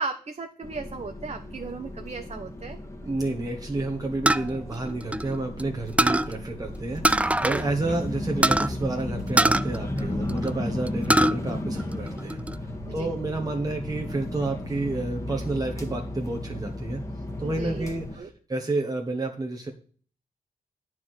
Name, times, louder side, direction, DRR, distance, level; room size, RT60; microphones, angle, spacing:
voice 1, 0.0-2.8 7.6-8.0 12.9-13.1 17.4-17.9 18.2-18.3, right 4 dB, 45° right, 5 dB, 1.0 m, -36 dB
sound 1, 0.6-18.2, left 1 dB, 20° left, 1.8 m, -34 dB
voice 2, 3.0-12.4 12.9-17.0 17.4-19.7, right 2 dB, 25° right, 2 dB, 1.5 m, -30 dB
sound 2, 4.3-5.6 6.0-6.3 7.0-7.7 7.9-8.0 8.4-8.7 9.4-10.5 10.9-11.4 11.8-12.5, right 1 dB, 10° right, 0.4 m, -22 dB
9.5 x 4.8 x 7.8 m, 0.43 s
cardioid pair, 70°, 15 cm